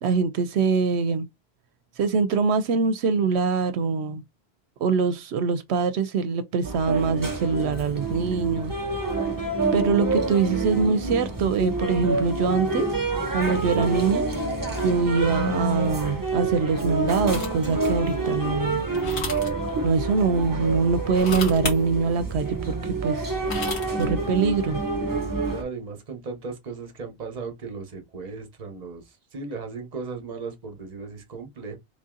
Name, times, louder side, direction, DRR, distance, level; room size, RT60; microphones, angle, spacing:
voice 1, 0.0-1.3 2.0-4.2 4.8-8.7 9.7-12.9 13.3-14.3 14.8-18.8 19.8-23.3 23.9-24.8, right 5 dB, 80° right, 0.8 m, -23 dB
sound 1, 6.6-25.6, right 3 dB, 20° right, 1.0 m, -27 dB
sound 2, 17.3-17.7 18.9-19.5 21.1-21.8 23.2-24.1, left 3 dB, 90° left, 1.6 m, -32 dB
voice 2, 25.5-31.8, right 4 dB, 40° right, 1.0 m, -36 dB
3.5 x 2.6 x 3.7 m
omnidirectional pair, 1.1 m